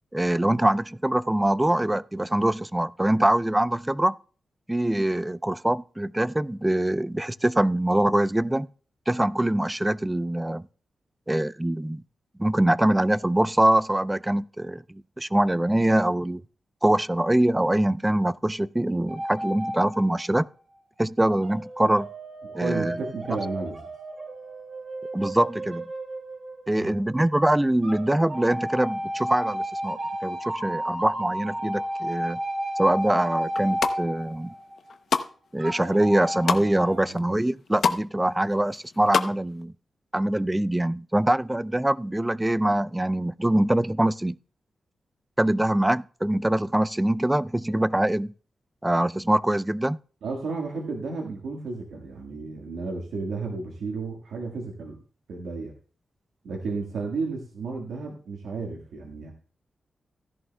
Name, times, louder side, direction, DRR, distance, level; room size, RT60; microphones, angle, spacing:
voice 1, 0.1-4.1 4.7-8.7 9.1-10.7 11.3-12.0 12.4-16.4 16.8-20.5 21.0-22.1 22.5-23.0 25.1-25.8 26.7-32.4 32.8-34.5 35.5-39.7 40.1-44.4 45.4-48.3 48.8-50.0, right 1 dB, 15° right, 0.4 m, -23 dB
sound 1, 19.1-20.5 21.4-27.3 27.8-34.9 35.6-37.0, right 1 dB, 60° right, 4.4 m, -33 dB
voice 2, 22.5-23.8 26.8-27.0 36.9-37.2 50.2-55.0 55.3-55.7 56.4-59.3, right 4 dB, 90° right, 1.5 m, -33 dB
sound 2, 33.5-34.0 34.5-35.3 35.7-36.6 37.2-37.3 37.5-38.0 38.3-39.3 39.6-39.7, left 5 dB, 70° left, 0.7 m, -26 dB
15.5 x 11.0 x 2.2 m
cardioid pair, 65°, 0 cm